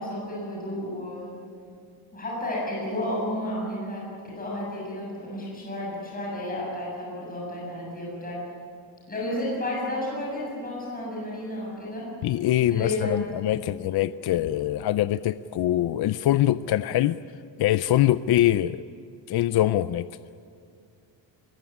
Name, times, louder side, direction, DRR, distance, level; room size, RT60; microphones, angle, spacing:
voice 1, 0.0-1.4 2.1-8.4 9.1-12.1 12.7-13.2 13.5-13.6, left 1 dB, 20° left, -4 dB, 7.3 m, -32 dB
voice 2, 12.2-17.2 17.6-18.8 19.3-20.1, left 13 dB, 60° left, 14 dB, 0.5 m, -23 dB
24.0 x 21.5 x 9.9 m, 2.3 s
cardioid pair, 180°, 45 cm